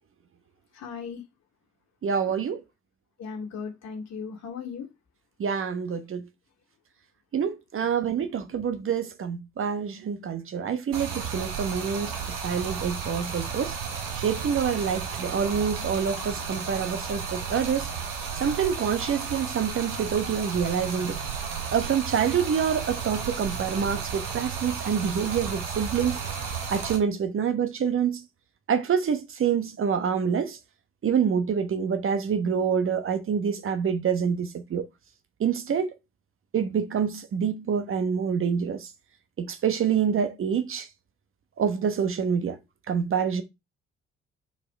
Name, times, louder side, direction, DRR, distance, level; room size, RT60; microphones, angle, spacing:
voice 1, 0.7-1.2 3.2-4.9, left 6 dB, 50° left, 2.4 m, -37 dB
voice 2, 2.0-2.6 5.4-6.3 7.3-13.7 14.1-17.9 18.4-21.2 21.7-26.2 26.7-28.2 28.7-30.6 31.0-34.9 35.4-35.9 36.5-38.9 39.4-40.9 41.6-42.6 42.9-43.4, right 7 dB, 40° right, 1.1 m, -26 dB
Stream, 10.9-27.0, right 6 dB, 65° right, 1.8 m, -33 dB
5.9 x 4.8 x 5.3 m
figure-of-eight pair, 45°, 34 cm